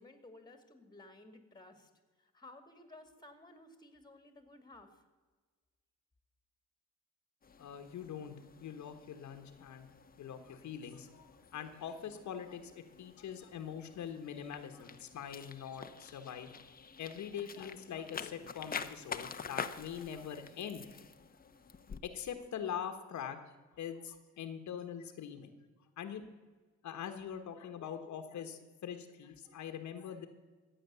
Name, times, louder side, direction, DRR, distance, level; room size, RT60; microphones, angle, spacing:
voice 1, 0.0-1.9 2.2-5.0, left 2 dB, 15° left, 8 dB, 2.3 m, -56 dB
sound 1, 7.4-22.0, left 6 dB, 30° left, 0.9 m, -48 dB
voice 2, 7.6-8.3 8.6-9.9 10.2-11.2 11.5-16.5 17.0-21.0 22.0-23.4 23.8-25.5 26.0-26.2 26.8-30.3, left 8 dB, 70° left, 7 dB, 1.3 m, -43 dB
14.5 x 8.6 x 6.9 m, 1.4 s
cardioid pair, 90°, 30 cm